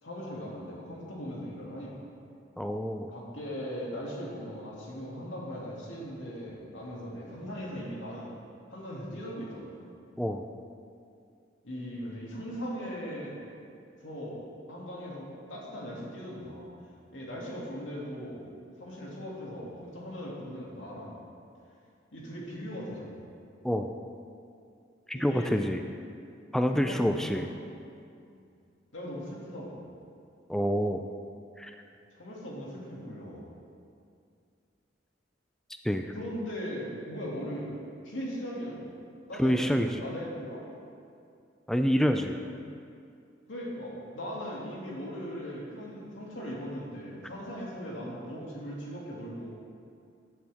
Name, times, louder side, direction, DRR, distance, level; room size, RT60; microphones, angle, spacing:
voice 1, 0.0-1.9 3.1-8.4 8.7-9.8 11.6-13.5 14.0-14.4 14.7-16.7 17.1-18.5 18.8-21.2 22.1-23.2 25.1-25.8 26.7-27.5 28.3-28.4 28.9-29.8 32.2-33.4 36.1-37.8 38.0-38.9 39.3-40.6 43.5-49.5, equal, 90° left, -4 dB, 2.4 m, -39 dB
voice 2, 2.6-3.1 10.2-10.4 23.6-23.9 25.1-25.8 26.5-27.5 30.5-31.1 31.6-31.7 35.8-36.1 39.4-39.9 41.7-42.4, equal, 5° left, 6 dB, 0.3 m, -27 dB
13.5 x 7.9 x 3.5 m, 2.4 s
head